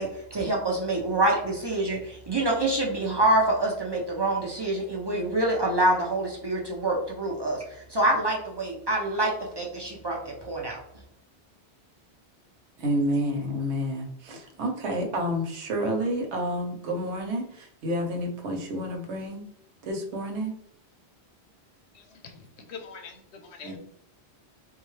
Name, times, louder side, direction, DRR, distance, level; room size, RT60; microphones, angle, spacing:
voice 1, 0.0-10.8, right 1 dB, 35° right, -2 dB, 0.4 m, -26 dB
voice 2, 12.8-19.4 19.8-20.5 23.6-23.8, equal, 85° right, 2 dB, 1.0 m, -29 dB
voice 3, 21.9-23.8, left 5 dB, 80° left, 5 dB, 0.9 m, -44 dB
3.6 x 2.3 x 3.1 m, 0.73 s
omnidirectional pair, 1.1 m